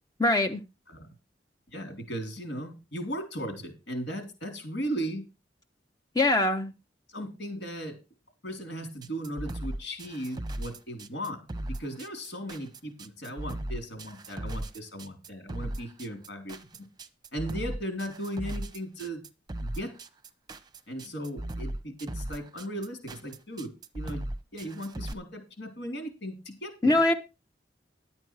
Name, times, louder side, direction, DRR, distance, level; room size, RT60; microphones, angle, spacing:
voice 1, 0.2-0.6 6.1-6.7 26.8-27.1, left 2 dB, 20° left, 6 dB, 0.8 m, -22 dB
voice 2, 1.7-5.2 7.1-8.0 8.4-11.4 11.7-16.6 17.3-19.2 19.6-19.9 20.9-24.2 24.5-27.0, equal, 75° left, 6 dB, 3.7 m, -37 dB
sound 1, 9.0-25.1, right 1 dB, 25° right, 0.9 m, -37 dB
11.5 x 8.7 x 4.8 m, 0.29 s
head